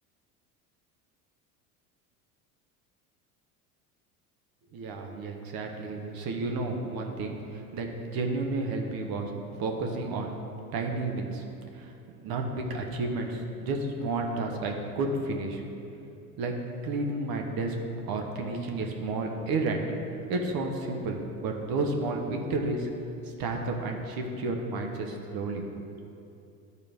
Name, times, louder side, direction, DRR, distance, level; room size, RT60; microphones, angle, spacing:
voice 1, 4.7-9.3 9.6-10.4 10.7-11.4 11.7-15.6 16.4-16.5 16.8-17.8 18.1-19.8 20.3-22.9 23.4-25.6, right 3 dB, 50° right, 2 dB, 1.2 m, -31 dB
10.5 x 4.4 x 5.2 m, 2.7 s
hypercardioid pair, 80°, 45 cm